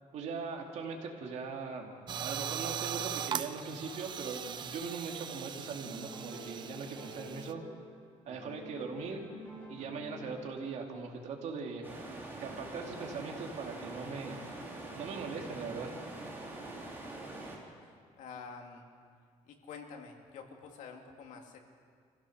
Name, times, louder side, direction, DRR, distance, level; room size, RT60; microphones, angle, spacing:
voice 1, 0.1-7.6 8.2-9.2 9.7-11.9 12.4-14.4 14.9-15.9, right 5 dB, 65° right, 2 dB, 2.6 m, -40 dB
sound 1, 2.1-7.5, right 8 dB, 35° right, 0.5 m, -39 dB
sound 2, 5.6-8.0 8.3-10.7, left 1 dB, 15° left, 4.9 m, -49 dB
sound 3, 11.8-17.6, right 2 dB, 15° right, 3.1 m, -44 dB
voice 2, 16.6-18.9 19.4-21.6, left 5 dB, 80° left, 2 dB, 2.5 m, -49 dB
26.0 x 15.5 x 6.6 m, 2.1 s
cardioid pair, 165°, 13 cm